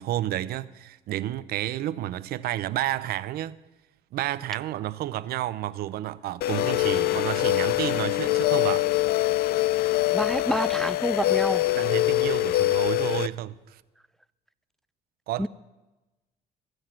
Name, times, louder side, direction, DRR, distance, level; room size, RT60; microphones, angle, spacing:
voice 1, 0.0-3.6 4.1-8.9 11.7-13.8 15.3-15.5, right 13 dB, 75° right, 0.7 m, -31 dB
sound 1, 6.4-13.3, left 17 dB, 75° left, 0.4 m, -24 dB
voice 2, 10.1-11.7 15.4-15.5, equal, ahead, 0.4 m, -28 dB
22.5 x 9.8 x 6.0 m
cardioid pair, 95°, 16 cm